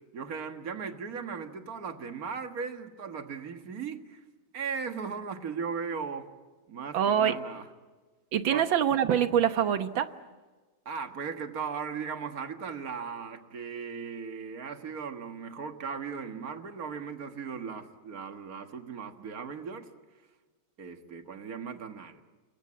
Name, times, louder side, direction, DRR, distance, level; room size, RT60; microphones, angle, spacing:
voice 1, 0.1-4.2 4.5-6.3 6.7-7.7 8.5-8.7 10.9-19.9 20.8-22.2, right 6 dB, 50° right, 7 dB, 2.0 m, -37 dB
voice 2, 6.9-7.4 8.3-10.1, right 9 dB, 80° right, 10 dB, 1.9 m, -25 dB
29.0 x 22.5 x 8.6 m, 1.3 s
omnidirectional pair, 2.1 m